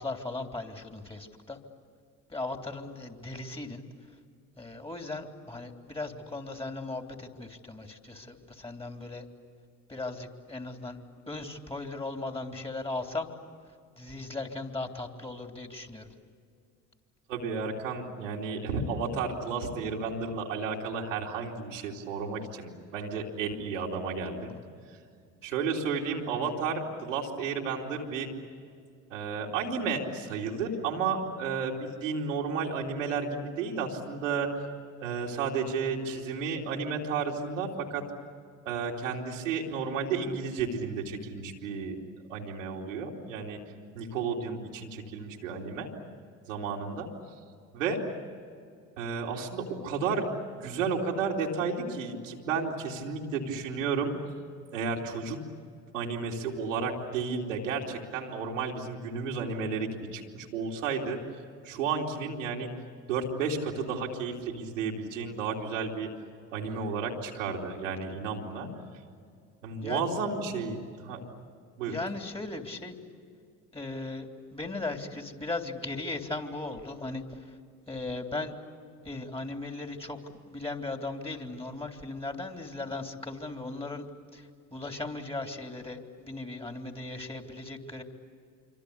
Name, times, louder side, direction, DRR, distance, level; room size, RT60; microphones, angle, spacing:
voice 1, 0.0-1.6 2.3-3.8 4.6-9.3 9.9-11.0 11.3-13.3 14.0-16.1 25.4-25.5 66.6-66.8 69.8-70.0 71.9-73.0 73.7-77.6 77.9-78.5 79.0-84.1 84.3-88.0, left 2 dB, 15° left, 4 dB, 3.5 m, -37 dB
voice 2, 17.3-24.5 25.4-28.3 29.1-34.6 35.0-38.0 38.6-42.0 42.3-43.6 43.9-45.9 46.5-47.1 47.7-48.0 49.0-50.3 50.6-54.1 54.7-55.4 55.9-61.2 61.6-62.7 63.1-66.1 66.5-68.7 69.6-70.8 71.0-71.2 71.8-71.9, right 5 dB, 90° right, -1 dB, 3.0 m, -32 dB
26.5 x 25.0 x 8.4 m, 2.3 s
hypercardioid pair, 60°, 37 cm